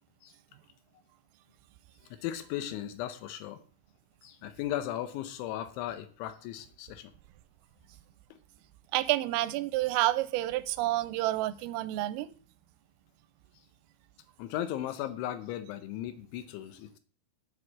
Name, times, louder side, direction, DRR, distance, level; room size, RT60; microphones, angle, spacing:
voice 1, 2.1-3.6 4.2-7.1 14.4-17.0, left 12 dB, 75° left, 3.0 m, -36 dB
voice 2, 8.9-12.3, right 16 dB, 90° right, 3.3 m, -29 dB
8.0 x 7.9 x 7.3 m
omnidirectional pair, 5.8 m